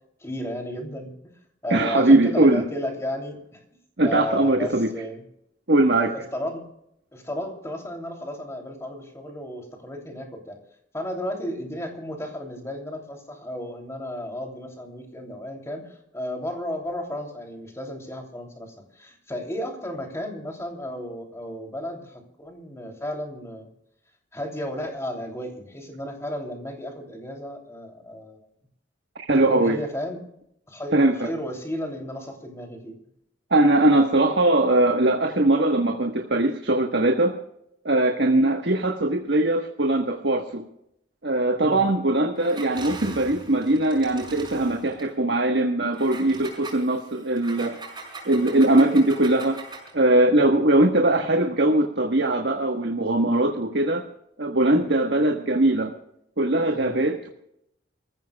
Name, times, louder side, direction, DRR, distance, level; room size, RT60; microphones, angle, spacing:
voice 1, 0.2-1.1 1.6-3.6 4.0-5.2 6.0-6.6 7.1-10.6 10.9-23.7 24.3-28.5 29.5-30.2 30.7-33.0 38.2-38.4 41.6-41.9 50.4-50.6 56.7-57.0, left 1 dB, 15° left, 2 dB, 3.0 m, -33 dB
voice 2, 1.7-2.6 4.0-4.9 5.7-6.1 29.1-29.8 30.9-31.3 33.5-37.4 37.8-40.6 41.2-47.8 48.2-49.6 49.9-54.0 54.4-55.9 56.4-57.3, right 2 dB, 65° right, 4 dB, 1.4 m, -21 dB
Engine, 42.4-45.1 45.9-50.0, right 3 dB, 25° right, 5.7 m, -41 dB
27.0 x 15.0 x 2.3 m, 0.77 s
head